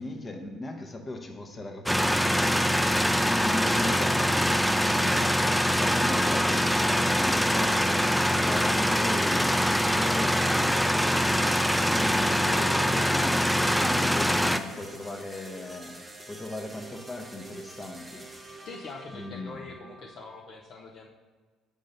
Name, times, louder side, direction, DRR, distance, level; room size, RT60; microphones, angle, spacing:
voice 1, 0.0-2.9 3.3-4.2 4.8-11.2 11.8-15.9 16.3-18.2 19.1-19.6, left 2 dB, 30° left, 3 dB, 0.9 m, -38 dB
sound 1, 1.9-14.6, equal, ahead, 0.4 m, -24 dB
sound 2, 2.4-20.4, right 1 dB, 15° right, 1.0 m, -46 dB
voice 2, 3.8-4.4 12.4-13.1 18.6-21.1, left 4 dB, 55° left, 0 dB, 0.6 m, -42 dB
5.1 x 3.8 x 5.4 m, 1.4 s
hypercardioid pair, 55°, 0 cm